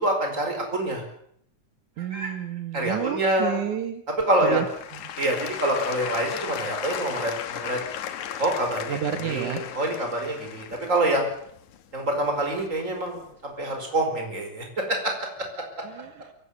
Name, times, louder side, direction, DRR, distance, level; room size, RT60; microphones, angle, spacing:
voice 1, 0.0-1.0 2.1-2.3 2.7-3.6 4.3-4.6 5.2-7.8 8.4-9.0 9.2-11.3 11.9-15.1, right 1 dB, 25° right, 3 dB, 5.3 m, -26 dB
voice 2, 2.0-4.0 4.4-4.7 4.9-5.1 8.9-9.6 15.8-16.3, right 10 dB, 80° right, 8 dB, 2.9 m, -30 dB
Applause / Crowd, 4.2-13.1 13.7-13.8, left 10 dB, 75° left, 2.7 m, -36 dB
23.5 x 17.0 x 8.4 m, 0.69 s
omnidirectional pair, 3.4 m